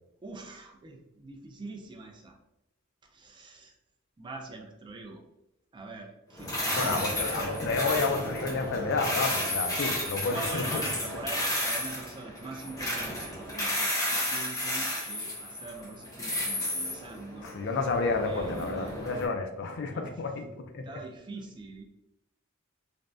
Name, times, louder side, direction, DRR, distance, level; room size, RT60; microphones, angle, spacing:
voice 1, 0.2-2.4 3.1-3.8 4.2-5.2 5.7-7.5 10.3-17.8 18.2-19.1 19.9-20.1 20.8-21.8, right 3 dB, 25° right, 2 dB, 0.3 m, -43 dB
sound 1, 6.4-19.2, left 1 dB, 15° left, 0.7 m, -32 dB
voice 2, 6.7-10.8 17.4-20.5 20.7-20.8, left 4 dB, 60° left, 5 dB, 0.4 m, -30 dB
3.3 x 2.1 x 2.5 m, 0.90 s
head